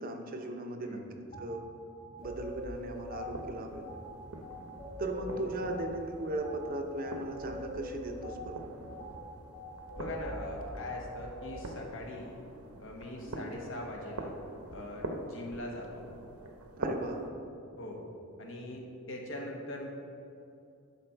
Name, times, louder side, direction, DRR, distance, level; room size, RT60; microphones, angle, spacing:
voice 1, 0.0-1.6 2.2-3.8 5.0-8.6 13.3-13.5 16.8-17.2, right 1 dB, 40° right, 4 dB, 0.6 m, -38 dB
voice 2, 0.8-1.1 5.3-5.5 10.0-12.4 12.8-14.4 14.7-16.1 17.8-18.0 18.4-19.9, left 1 dB, 60° left, 0 dB, 1.2 m, -42 dB
sound 1, 1.3-1.5 2.0-11.7, left 1 dB, 40° left, 1.5 m, -43 dB
sound 2, 2.2-17.3, right 2 dB, 75° right, 0.8 m, -45 dB
11.0 x 4.2 x 4.4 m, 2.6 s
head